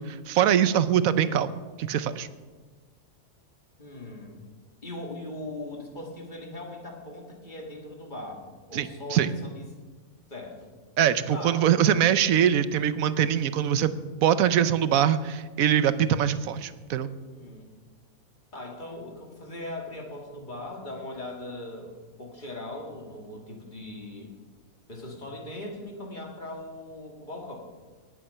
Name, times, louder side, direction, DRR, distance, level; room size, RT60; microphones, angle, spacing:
voice 1, 0.0-1.5 1.8-2.3 8.7-9.3 11.0-17.1, right 9 dB, 75° right, 14 dB, 1.1 m, -23 dB
voice 2, 3.8-4.4 4.8-9.6 10.3-10.7 11.3-11.6 17.3-17.7 18.5-24.4 24.9-27.6, left 1 dB, 35° left, 0 dB, 2.4 m, -39 dB
19.0 x 8.7 x 5.6 m, 1.4 s
omnidirectional pair, 1.5 m